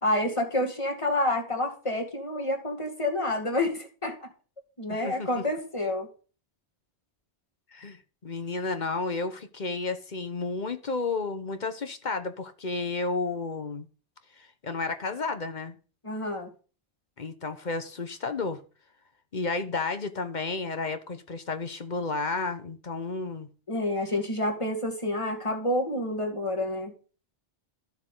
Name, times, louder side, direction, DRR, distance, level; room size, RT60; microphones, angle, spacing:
voice 1, 0.0-4.3 4.8-6.1 16.0-16.5 23.7-26.9, left 1 dB, 25° left, 3 dB, 2.3 m, -28 dB
voice 2, 4.9-5.4 7.7-8.0 8.2-13.9 14.4-15.8 17.2-18.6 19.3-23.5, left 3 dB, 45° left, 10 dB, 1.1 m, -32 dB
13.0 x 7.1 x 3.9 m, 0.37 s
omnidirectional pair, 1.2 m